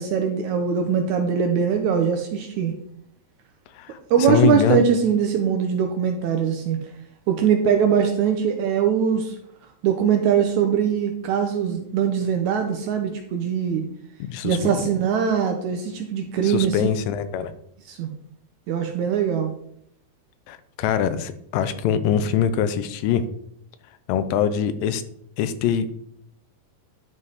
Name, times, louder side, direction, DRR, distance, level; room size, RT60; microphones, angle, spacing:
voice 1, 0.0-2.7 4.1-6.8 7.3-9.4 9.8-13.8 14.4-16.9 17.9-18.1 18.7-19.5, right 7 dB, 75° right, 5 dB, 1.8 m, -22 dB
voice 2, 3.8-4.8 14.2-14.7 16.4-17.5 20.5-23.2 24.1-25.0 25.4-25.9, left 8 dB, 85° left, 12 dB, 2.3 m, -23 dB
10.5 x 5.4 x 4.0 m, 0.71 s
omnidirectional pair, 4.0 m